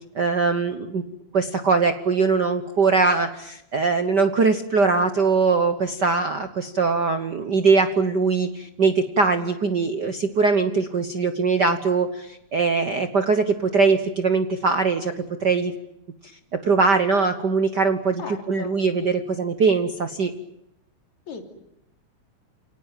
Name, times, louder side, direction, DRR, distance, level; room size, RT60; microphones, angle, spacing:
voice 1, 0.1-1.0 1.3-15.7 16.5-18.2 18.5-20.3, right 4 dB, 50° right, 9 dB, 1.2 m, -21 dB
voice 2, 18.2-18.8 21.3-21.5, left 5 dB, 70° left, 5 dB, 4.4 m, -37 dB
29.5 x 18.5 x 9.2 m, 0.84 s
omnidirectional pair, 3.4 m